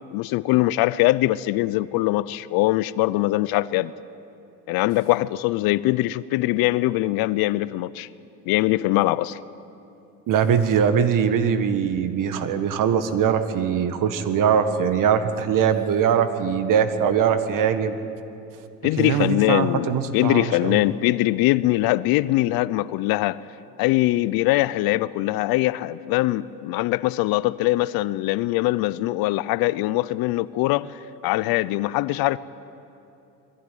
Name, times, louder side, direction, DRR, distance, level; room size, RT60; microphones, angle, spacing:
voice 1, 0.1-3.9 4.7-8.1 8.5-9.4 18.8-23.4 23.8-30.9 31.2-32.4, left 17 dB, 60° left, 0.6 m, -22 dB
voice 2, 10.3-17.9 19.0-20.8, right 7 dB, 50° right, 1.7 m, -21 dB
22.0 x 15.0 x 9.4 m
supercardioid pair, 95°, 40 cm